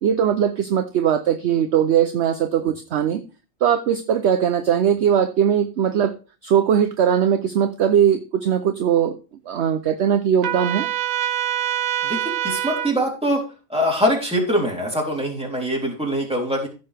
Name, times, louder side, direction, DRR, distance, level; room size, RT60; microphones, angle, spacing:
voice 1, 0.0-3.2 3.6-6.1 6.4-9.2 9.5-10.9, right 9 dB, 60° right, 9 dB, 0.9 m, -20 dB
Trumpet, 10.4-12.9, right 11 dB, 80° right, 1.1 m, -25 dB
voice 2, 12.4-13.4 13.7-16.7, equal, 5° right, -2 dB, 3.4 m, -23 dB
15.0 x 6.5 x 3.4 m, 0.34 s
omnidirectional pair, 1.4 m